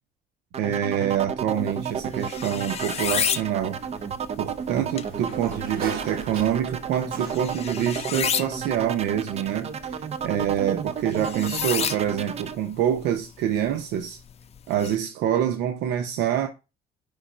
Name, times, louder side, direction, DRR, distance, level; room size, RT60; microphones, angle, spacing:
sound 1, 0.5-12.6, right 7 dB, 40° right, 0.6 m, -32 dB
voice 1, 0.6-3.8 4.4-14.2 14.7-16.5, right 10 dB, 85° right, 0.8 m, -26 dB
sound 2, 1.5-14.9, left 8 dB, 40° left, 0.5 m, -34 dB
Sliding door, 3.8-7.7, right 5 dB, 60° right, 1.3 m, -38 dB
5.3 x 3.6 x 5.1 m
cardioid pair, 110°, 17 cm